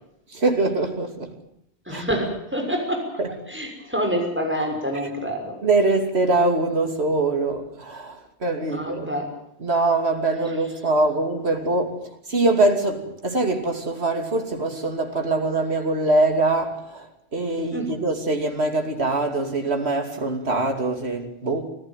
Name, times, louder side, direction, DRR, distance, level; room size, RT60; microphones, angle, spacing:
voice 1, 0.3-1.3 1.9-2.0 3.2-3.3 5.6-9.1 9.6-12.0 12.3-21.7, right 2 dB, 80° right, 3.1 m, -23 dB
voice 2, 1.9-3.0 3.5-5.5 8.7-9.3 17.7-17.9, equal, 10° right, 6.3 m, -27 dB
25.5 x 15.5 x 9.1 m
omnidirectional pair, 1.1 m